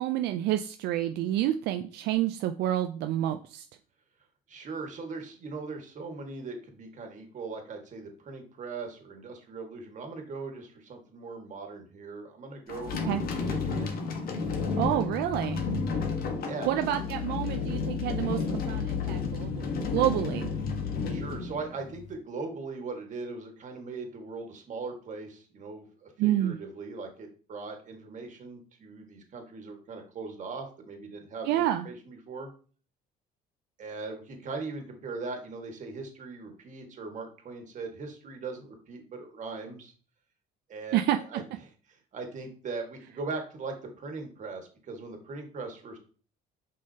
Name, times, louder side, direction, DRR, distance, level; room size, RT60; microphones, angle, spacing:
voice 1, 0.0-3.7 13.1-13.2 14.8-15.6 16.7-18.4 18.7-19.7 19.9-20.5 26.2-26.6 31.5-31.9 40.9-41.2, right 13 dB, 80° right, 7 dB, 0.5 m, -28 dB
voice 2, 4.5-13.9 16.4-16.8 21.1-32.5 33.8-39.9 40.7-41.4 41.9-46.0, right 4 dB, 45° right, 4 dB, 1.7 m, -40 dB
sound 1, 12.7-22.1, left 5 dB, 60° left, 1.3 m, -31 dB
6.3 x 5.5 x 2.8 m, 0.40 s
cardioid pair, 110°, 17 cm